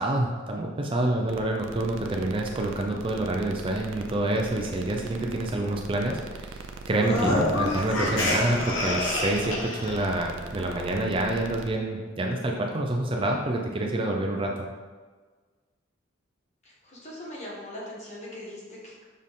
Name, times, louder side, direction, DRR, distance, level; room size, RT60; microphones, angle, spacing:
voice 1, 0.0-14.7, right 1 dB, 25° right, 1 dB, 0.5 m, -27 dB
sound 1, 1.3-11.7, right 3 dB, 80° right, 0.5 m, -41 dB
sound 2, 7.0-10.0, left 1 dB, 85° left, 1.2 m, -27 dB
voice 2, 16.8-19.0, left 1 dB, 35° left, -5 dB, 1.6 m, -40 dB
6.2 x 4.4 x 3.6 m, 1.4 s
head